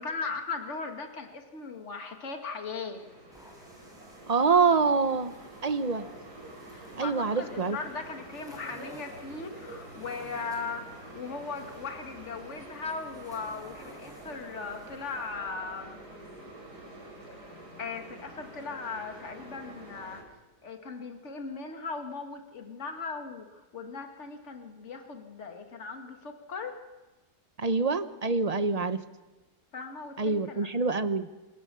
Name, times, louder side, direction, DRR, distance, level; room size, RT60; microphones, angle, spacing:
voice 1, 0.0-3.0 6.7-10.8 11.1-16.0 17.8-20.2 20.6-26.8 29.7-30.7, left 4 dB, 45° left, 4 dB, 2.3 m, -38 dB
sound 1, 3.0-20.2, right 1 dB, 70° right, 5.7 m, -47 dB
sound 2, 3.3-15.3, equal, ahead, 5.6 m, -56 dB
voice 2, 4.3-5.3 5.6-6.1 7.0-7.8 27.6-29.0 30.2-31.3, right 4 dB, 30° right, 11 dB, 0.8 m, -26 dB
28.0 x 16.0 x 7.0 m, 1.1 s
omnidirectional pair, 1.8 m